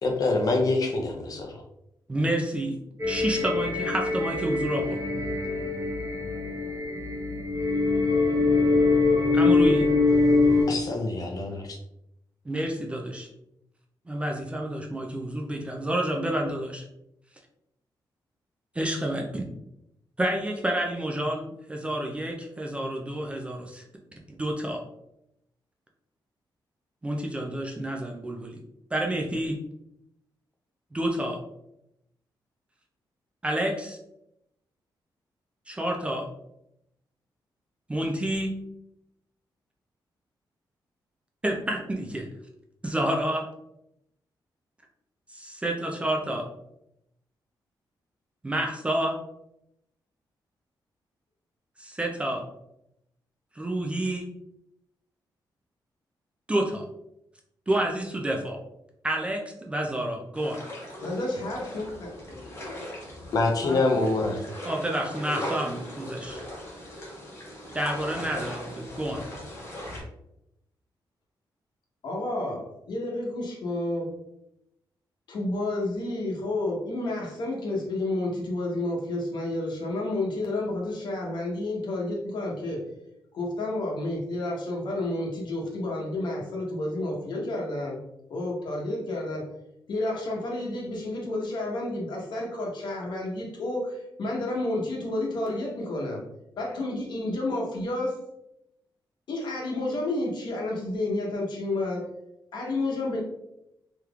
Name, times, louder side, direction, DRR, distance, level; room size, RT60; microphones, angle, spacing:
voice 1, 0.0-1.6 10.7-11.8 63.3-64.4, left 2 dB, 50° left, 3 dB, 0.6 m, -25 dB
voice 2, 2.1-5.0 9.3-9.9 12.5-13.3 14.1-16.8 18.8-19.4 20.2-23.8 24.3-24.8 27.0-28.6 28.9-29.6 30.9-31.4 33.4-34.0 35.7-36.3 37.9-38.5 41.4-42.3 42.8-43.4 45.3-46.4 48.4-49.2 51.8-52.4 53.6-54.2 56.5-56.9 57.7-58.6 59.0-60.6 64.6-66.4 67.7-69.2, right 1 dB, 15° right, 1 dB, 0.4 m, -29 dB
sound 1, 3.0-10.6, left 3 dB, 35° right, 1.0 m, -23 dB
sound 2, 60.3-70.0, equal, 30° left, 1.0 m, -39 dB
voice 3, 61.0-62.1 63.6-64.3 72.0-72.6 72.9-74.1 75.3-82.8 83.3-88.0 88.3-89.4 89.9-96.2 96.6-98.1 99.3-102.0 102.5-103.2, left 2 dB, 65° left, -2 dB, 1.0 m, -30 dB
3.4 x 3.0 x 2.3 m, 0.82 s
wide cardioid pair, 170°, 8 cm